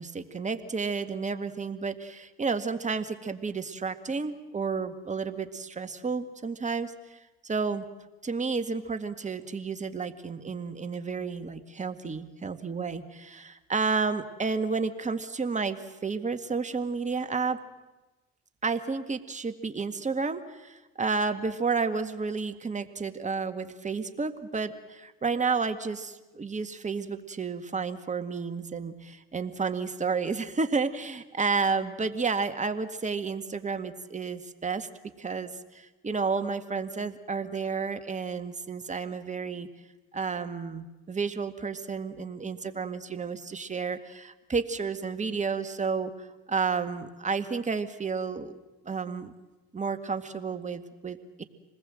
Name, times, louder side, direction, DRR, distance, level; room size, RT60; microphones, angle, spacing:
voice 1, 0.0-7.9 8.2-17.6 18.6-34.9 35.2-39.7 40.1-46.1 46.5-48.6 48.8-49.3 49.7-51.4, right 4 dB, 25° right, 8 dB, 2.0 m, -31 dB
26.5 x 20.0 x 7.8 m, 1.1 s
supercardioid pair, 85°, 31 cm